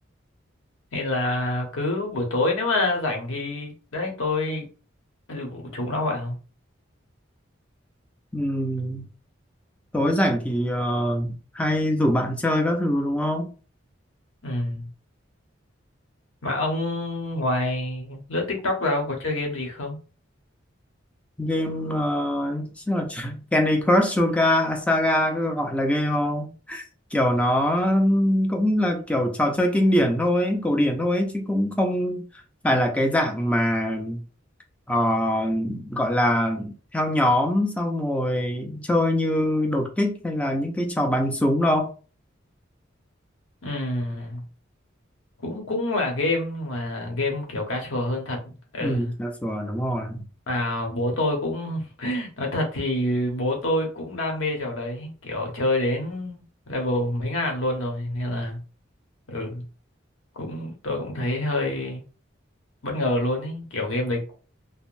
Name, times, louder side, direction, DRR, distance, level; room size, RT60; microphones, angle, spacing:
voice 1, 0.9-4.7 5.3-6.4 14.4-14.9 16.4-20.0 43.6-44.4 45.4-49.1 50.5-58.6 59.3-59.6 60.4-62.0 62.8-64.4, left 1 dB, 90° left, 0.9 m, -27 dB
voice 2, 8.3-9.1 9.9-13.5 21.4-26.8 27.1-32.3 32.6-34.2 34.9-41.9 48.8-50.2, left 1 dB, 5° left, 0.4 m, -23 dB
3.5 x 2.0 x 2.5 m
head